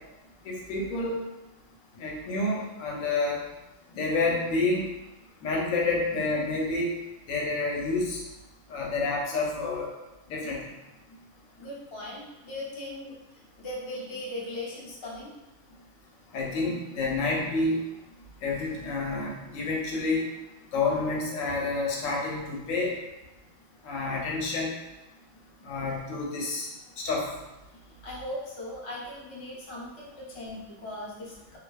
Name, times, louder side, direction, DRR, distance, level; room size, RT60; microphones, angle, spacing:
voice 1, 0.4-1.2 2.0-3.4 3.9-4.8 5.4-6.9 7.3-8.2 8.7-9.9 10.3-10.7 16.3-17.8 18.4-20.3 20.7-22.9 23.8-24.7 25.6-26.7 27.0-27.2, left 3 dB, 85° left, -2 dB, 1.0 m, -29 dB
voice 2, 11.6-13.2 13.6-15.3 28.0-31.6, left 1 dB, 40° left, -5 dB, 0.4 m, -38 dB
2.7 x 2.3 x 2.2 m, 1.0 s
omnidirectional pair, 1.3 m